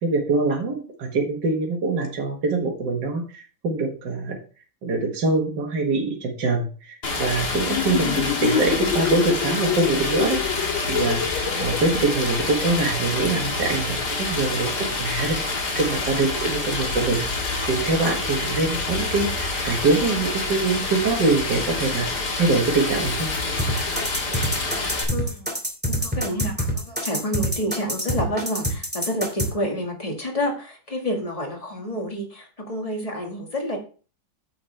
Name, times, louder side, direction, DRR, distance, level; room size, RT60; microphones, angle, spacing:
voice 1, 0.0-4.4 4.8-11.2 11.6-17.3 17.7-22.1 22.3-23.3, right 3 dB, 65° right, 1 dB, 2.3 m, -24 dB
Stream, 7.0-25.0, left 3 dB, 55° left, 2.5 m, -27 dB
sound 1, 7.6-12.9, left 11 dB, 90° left, 1.4 m, -27 dB
sound 2, 23.6-29.5, equal, 5° right, 2.2 m, -25 dB
voice 2, 25.1-25.5 25.9-33.8, equal, 20° left, 2 dB, 1.9 m, -29 dB
9.0 x 8.0 x 3.4 m, 0.38 s
omnidirectional pair, 2.1 m